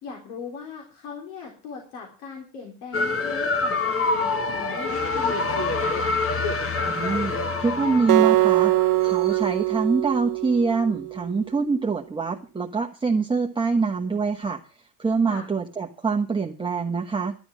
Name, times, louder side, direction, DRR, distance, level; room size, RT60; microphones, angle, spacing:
voice 1, 0.0-6.2 15.3-15.5, left 5 dB, 85° left, 1 dB, 3.9 m, -39 dB
sound 1, 2.9-9.5, left 3 dB, 30° left, 1.5 m, -26 dB
voice 2, 6.8-14.6 15.0-17.4, right 4 dB, 10° right, 1 dB, 1.2 m, -25 dB
Acoustic guitar, 8.1-11.3, right 20 dB, 60° right, 0.6 m, -22 dB
11.5 x 11.5 x 6.2 m, 0.35 s
supercardioid pair, 105°, 42 cm